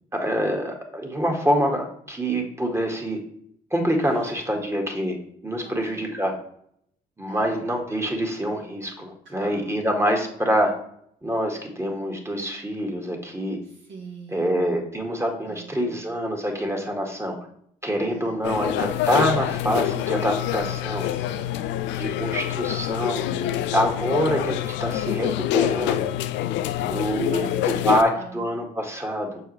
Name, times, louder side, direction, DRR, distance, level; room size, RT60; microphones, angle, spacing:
voice 1, 0.1-3.2 3.7-5.2 5.4-6.3 7.2-10.7 11.2-13.6 14.3-17.4 17.8-21.0 22.0-23.3 23.7-26.1 26.8-29.4, equal, 15° right, 2 dB, 1.8 m, -25 dB
voice 2, 4.0-4.7 5.6-6.1 7.3-7.6 9.3-9.9 13.6-14.7 15.5-16.1 18.1-18.6 20.6-21.7 23.3-23.7 26.8-28.5, right 5 dB, 75° right, -2 dB, 1.9 m, -43 dB
sound 1, 18.4-28.0, left 12 dB, 75° left, 0.4 m, -26 dB
6.7 x 4.7 x 3.2 m, 0.67 s
hypercardioid pair, 50°, 19 cm